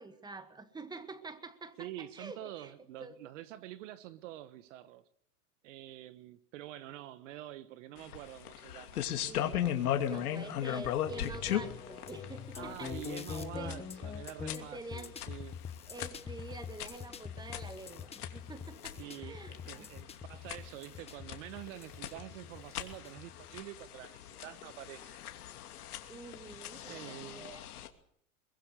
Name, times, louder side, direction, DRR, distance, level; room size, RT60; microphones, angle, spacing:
voice 1, 0.0-2.7 3.0-3.1 9.1-13.9 14.5-15.1 15.9-19.9 26.1-27.7, right 3 dB, 10° right, 1.9 m, -47 dB
voice 2, 1.8-5.0 5.6-9.0 9.8-10.4 12.5-15.6 19.0-25.2 26.9-27.5, right 14 dB, 55° right, 1.3 m, -47 dB
sound 1, 8.0-27.9, left 11 dB, 75° left, 2.9 m, -39 dB
sound 2, 11.1-23.6, left 7 dB, 15° left, 1.4 m, -45 dB
23.0 x 21.0 x 6.7 m
hypercardioid pair, 130°, 45 cm